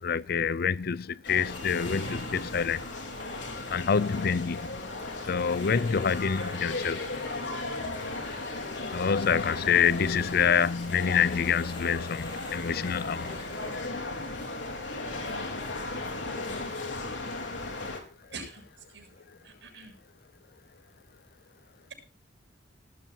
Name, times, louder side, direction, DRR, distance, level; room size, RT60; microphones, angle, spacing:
voice 1, 0.0-2.8 3.5-4.8 5.3-7.1 8.9-13.5 19.3-19.4, left 6 dB, 60° left, 0.5 m, -27 dB
sound 1, 1.2-18.0, left 2 dB, 80° left, 3.9 m, -36 dB
sound 2, 1.5-13.9, left 3 dB, 30° left, 3.1 m, -51 dB
voice 2, 18.3-20.0, right 3 dB, 80° right, 7.2 m, -45 dB
19.0 x 13.5 x 2.8 m
head